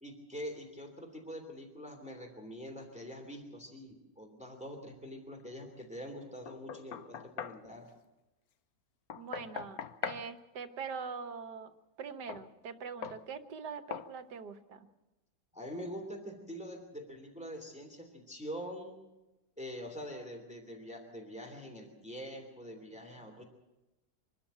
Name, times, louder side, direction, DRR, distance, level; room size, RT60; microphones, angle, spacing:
voice 1, 0.0-7.8 15.5-19.0 19.6-23.4, equal, 5° right, 4 dB, 2.8 m, -44 dB
Knock, 6.5-7.6 9.1-10.3 12.3-12.5 13.0-13.2 13.9-14.1, left 8 dB, 65° left, 1.3 m, -41 dB
voice 2, 9.2-11.7 12.0-14.9, right 5 dB, 80° right, 10 dB, 1.8 m, -43 dB
24.5 x 13.0 x 9.0 m, 1.0 s
omnidirectional pair, 1.8 m